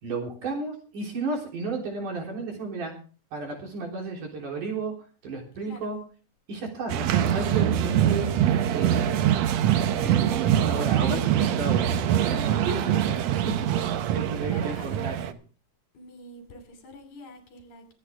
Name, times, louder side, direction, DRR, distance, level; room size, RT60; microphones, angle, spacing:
voice 1, 0.0-2.9 3.3-4.9 5.2-6.0 6.5-8.3 8.7-9.3 10.0-15.2, right 3 dB, 60° right, 5.0 m, -33 dB
sound 1, 6.9-15.3, right 10 dB, 90° right, 1.5 m, -24 dB
voice 2, 14.5-15.3 15.9-17.9, left 2 dB, 60° left, 4.1 m, -46 dB
24.0 x 8.9 x 3.5 m
omnidirectional pair, 4.1 m